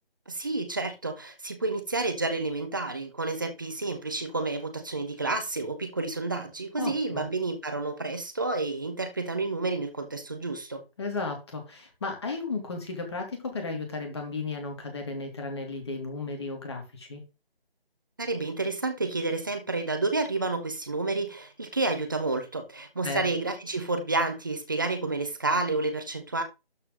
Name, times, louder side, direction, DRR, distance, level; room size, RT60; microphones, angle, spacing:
voice 1, 0.3-10.8 18.2-26.4, right 3 dB, 20° right, 1.0 m, -30 dB
voice 2, 6.8-7.2 11.0-17.2 23.0-23.3, left 3 dB, 25° left, 2.8 m, -34 dB
12.5 x 4.4 x 3.9 m
figure-of-eight pair, 160°, 30 cm